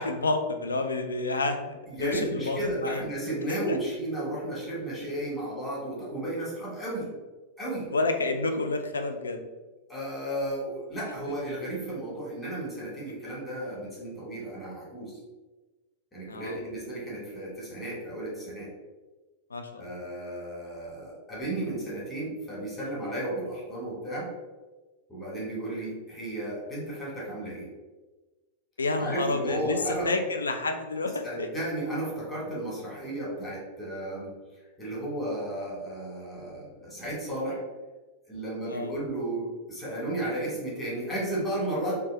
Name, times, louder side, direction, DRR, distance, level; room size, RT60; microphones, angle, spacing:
voice 1, 0.0-3.0 3.7-3.8 7.9-9.4 16.3-16.6 19.5-19.9 28.8-31.5 38.7-38.9, left 3 dB, 75° left, 7 dB, 0.3 m, -29 dB
voice 2, 1.9-7.1 7.6-7.9 9.9-15.2 16.1-18.7 19.7-24.3 25.1-27.7 29.0-30.1 31.2-34.4 34.8-37.6 38.3-41.9, right 1 dB, 15° left, -6 dB, 1.5 m, -33 dB
3.2 x 2.2 x 3.3 m, 1.2 s
figure-of-eight pair, 90°, 0 cm